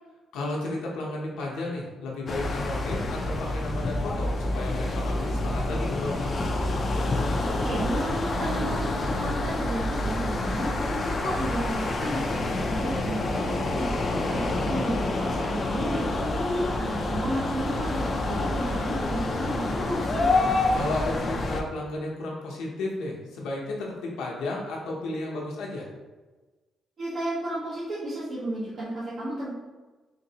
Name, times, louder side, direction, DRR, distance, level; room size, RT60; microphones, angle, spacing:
voice 1, 0.3-6.3 20.7-25.9, left 2 dB, 85° left, -2 dB, 0.8 m, -33 dB
sound 1, 2.3-21.6, left 2 dB, 40° left, 0.4 m, -27 dB
voice 2, 7.2-13.9 14.3-20.3 27.0-29.5, right 1 dB, 55° right, -10 dB, 1.0 m, -33 dB
3.8 x 2.6 x 2.8 m, 1.2 s
cardioid pair, 90°, 0 cm